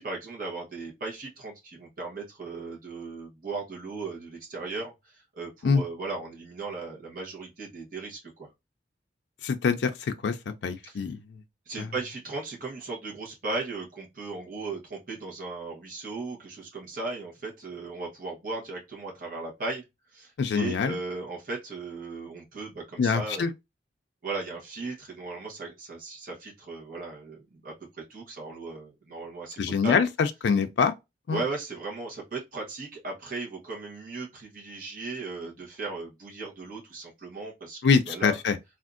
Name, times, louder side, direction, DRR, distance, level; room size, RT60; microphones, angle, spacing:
voice 1, 0.0-8.5 10.8-11.0 11.7-19.8 20.1-23.5 24.2-29.9 31.3-38.4, right 3 dB, 50° right, 1.0 m, -37 dB
voice 2, 9.4-10.4 10.6-11.2 11.8-11.9 20.4-20.9 23.0-23.5 29.6-30.9 31.3-31.4 37.8-38.5, left 5 dB, 70° left, 0.4 m, -24 dB
3.5 x 2.4 x 2.4 m
head